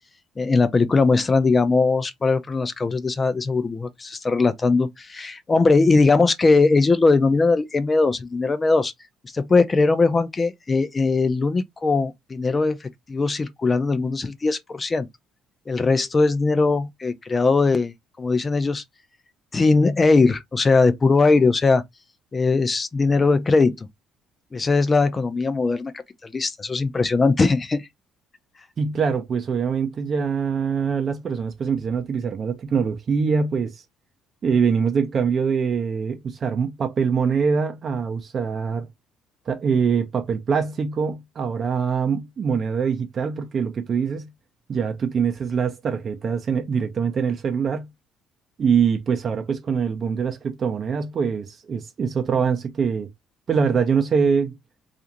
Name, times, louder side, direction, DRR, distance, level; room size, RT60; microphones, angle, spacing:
voice 1, 0.4-8.9 9.3-15.1 15.7-18.8 19.5-21.8 22.3-23.9 24.5-27.9, left 3 dB, 30° left, 0.5 m, -20 dB
voice 2, 28.8-33.8 34.4-38.9 39.5-44.3 44.7-47.9 48.6-53.1 53.5-54.6, right 6 dB, 45° right, 0.5 m, -23 dB
2.5 x 2.4 x 2.8 m
supercardioid pair, 80°, 0 cm